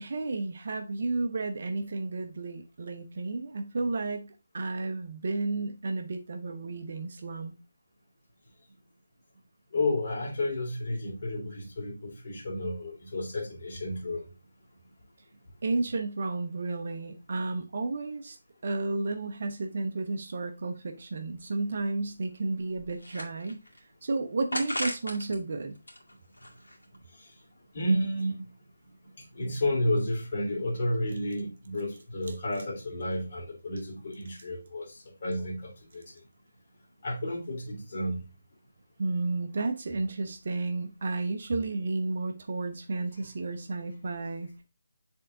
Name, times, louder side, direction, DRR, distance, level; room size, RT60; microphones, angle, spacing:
voice 1, 0.0-7.5 15.6-18.4 18.6-23.6 24.0-25.8 39.0-44.6, right 3 dB, 45° right, 6 dB, 0.7 m, -32 dB
voice 2, 9.7-14.2 27.7-28.4 29.3-34.9 35.2-36.0 37.0-38.2, left 1 dB, 40° left, -1 dB, 2.4 m, -31 dB
sound 1, 21.4-21.5 21.8-21.9 22.5-23.8 24.5-25.4 25.7-27.0, left 1 dB, 70° left, 2.1 m, -37 dB
7.7 x 3.7 x 3.6 m, 0.29 s
figure-of-eight pair, 150°, 0 cm